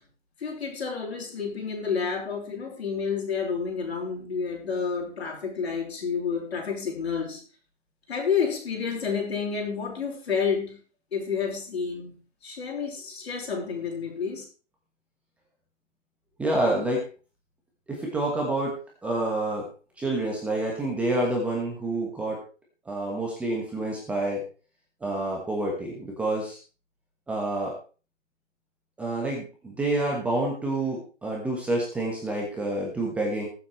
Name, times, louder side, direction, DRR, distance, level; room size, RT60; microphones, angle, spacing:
voice 1, 0.4-7.4 8.1-10.8 11.1-14.4, left 6 dB, 60° left, 4.7 m, -30 dB
voice 2, 16.4-17.1 17.9-18.8 19.0-19.7 20.0-22.4 22.8-24.4 25.0-26.6 27.3-27.7 29.0-33.4, right 2 dB, 5° right, 1.3 m, -28 dB
20.0 x 7.6 x 3.2 m
hypercardioid pair, 155°, 37 cm